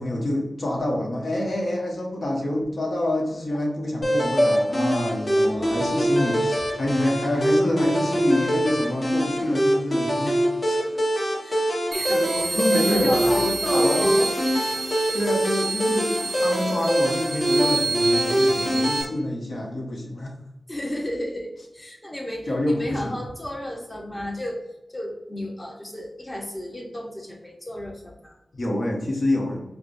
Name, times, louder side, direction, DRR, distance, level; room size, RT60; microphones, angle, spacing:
voice 1, 0.0-10.4 10.6-10.8 12.1-14.1 15.1-20.3 22.5-23.2 28.5-29.6, left 1 dB, 65° left, -1 dB, 1.0 m, -27 dB
sound 1, 4.0-19.0, equal, 45° left, 1.2 m, -24 dB
voice 2, 5.4-6.8 10.2-10.4 11.4-14.3 15.1-15.3 20.7-24.6 24.9-28.4, left 1 dB, 20° left, 0 dB, 0.9 m, -33 dB
sound 2, 11.9-19.1, right 4 dB, 55° right, 0.5 m, -29 dB
4.8 x 2.1 x 2.6 m, 0.90 s
cardioid pair, 50°, 0 cm